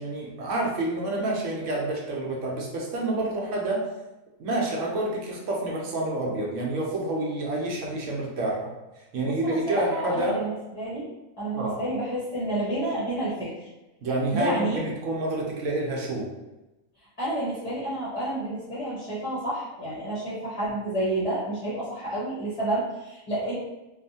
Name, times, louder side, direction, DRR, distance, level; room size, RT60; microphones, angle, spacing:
voice 1, 0.0-3.8 4.4-8.7 9.1-10.4 11.5-11.7 14.0-16.3, right 2 dB, 70° right, -2 dB, 1.0 m, -28 dB
voice 2, 9.2-11.0 11.4-13.7 14.3-14.8 17.0-23.5, right 1 dB, 30° left, -10 dB, 0.7 m, -30 dB
2.7 x 2.4 x 2.7 m, 1.0 s
omnidirectional pair, 1.4 m